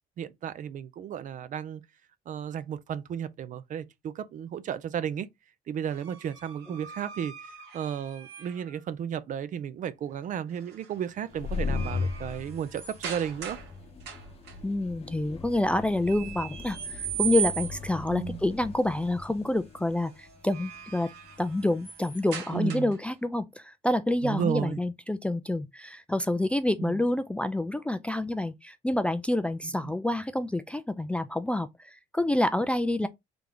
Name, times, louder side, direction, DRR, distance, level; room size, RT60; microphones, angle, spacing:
voice 1, 0.2-1.8 2.3-5.3 5.7-7.3 7.7-13.6 18.1-18.4 22.5-22.9 24.2-24.8 26.8-27.0, right 8 dB, 50° right, 0.5 m, -33 dB
sound 1, 5.9-8.8 10.5-10.9 11.3-13.7 14.0-14.5 16.1-18.0 20.3-23.1, right 8 dB, 85° right, 1.8 m, -38 dB
sound 2, 11.2-21.7, left 4 dB, 35° left, 0.9 m, -38 dB
voice 2, 14.6-21.1 21.4-33.1, left 1 dB, 5° left, 0.3 m, -28 dB
3.4 x 3.0 x 3.8 m
cardioid pair, 110°, 17 cm